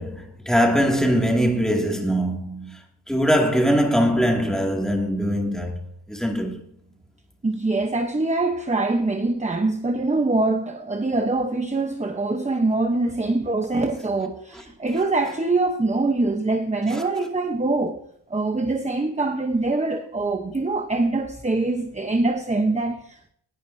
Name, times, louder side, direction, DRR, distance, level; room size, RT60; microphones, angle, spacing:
voice 1, 0.0-2.8 3.1-5.7 6.1-6.6 16.9-17.0, equal, ahead, 2.3 m, -22 dB
voice 2, 7.4-18.0 18.3-23.3, right 2 dB, 15° right, 0.9 m, -24 dB
19.0 x 11.0 x 2.7 m
wide cardioid pair, 165°, 43 cm